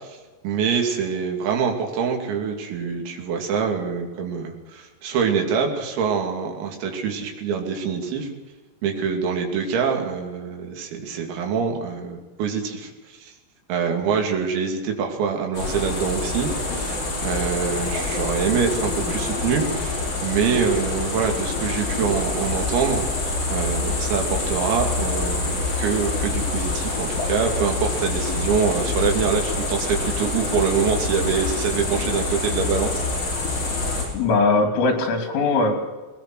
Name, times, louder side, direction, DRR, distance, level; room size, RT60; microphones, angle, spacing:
voice 1, 0.4-8.3 8.8-12.9 13.2-13.3 13.7-17.0 17.2-33.0, right 6 dB, 85° right, 2 dB, 5.7 m, -25 dB
sound 1, 15.5-34.1, left 3 dB, 35° left, 7.5 m, -26 dB
voice 2, 34.1-35.7, left 3 dB, 75° left, 4 dB, 5.8 m, -20 dB
20.5 x 20.0 x 6.4 m, 1.2 s
omnidirectional pair, 6.0 m